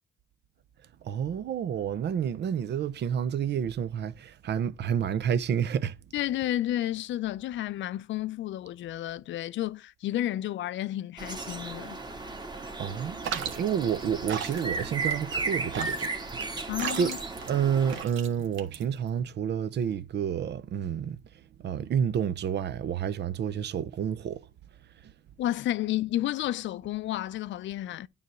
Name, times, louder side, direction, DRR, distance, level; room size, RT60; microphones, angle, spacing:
voice 1, 1.0-5.9 12.8-16.7 16.9-17.2 17.5-21.2 21.6-24.5 25.0-25.1, right 8 dB, 60° right, 0.6 m, -29 dB
voice 2, 6.1-12.0 16.7-17.2 25.4-28.1, left 13 dB, 70° left, 0.5 m, -31 dB
sound 1, 11.2-18.0, right 3 dB, 20° right, 1.7 m, -35 dB
sound 2, 13.2-19.2, right 8 dB, 75° right, 1.6 m, -37 dB
9.4 x 3.4 x 6.1 m
cardioid pair, 90°, 20 cm